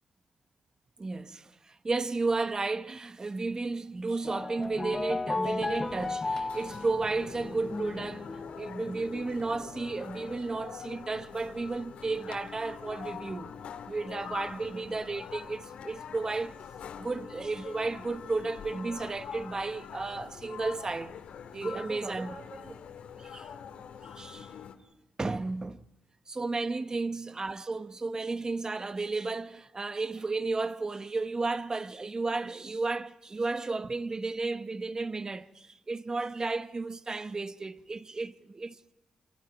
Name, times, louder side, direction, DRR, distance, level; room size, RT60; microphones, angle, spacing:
voice 1, 1.0-8.3 8.6-13.5 13.9-16.6 17.0-21.2 21.5-22.8 23.2-23.5 24.0-24.5 25.2-25.8 26.3-38.9, right 3 dB, 35° right, 1.1 m, -33 dB
sound 1, 4.1-9.9, left 3 dB, 25° left, 0.8 m, -35 dB
sound 2, 5.8-24.8, left 7 dB, 90° left, 2.2 m, -44 dB
29.0 x 27.0 x 5.4 m
cardioid pair, 75°, 2 cm